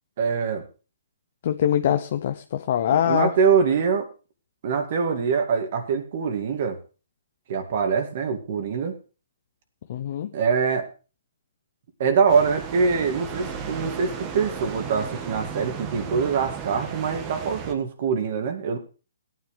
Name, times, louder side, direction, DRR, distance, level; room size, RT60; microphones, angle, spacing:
voice 1, 0.2-0.6 2.9-4.1 4.6-6.8 7.5-8.9 10.3-10.9 12.0-18.8, right 5 dB, 50° right, 2.2 m, -24 dB
voice 2, 1.4-3.3 9.9-10.3, left 10 dB, 50° left, 0.7 m, -23 dB
sound 1, 12.3-17.7, right 7 dB, 25° right, 1.6 m, -35 dB
17.0 x 9.5 x 3.3 m
hypercardioid pair, 145°, 0 cm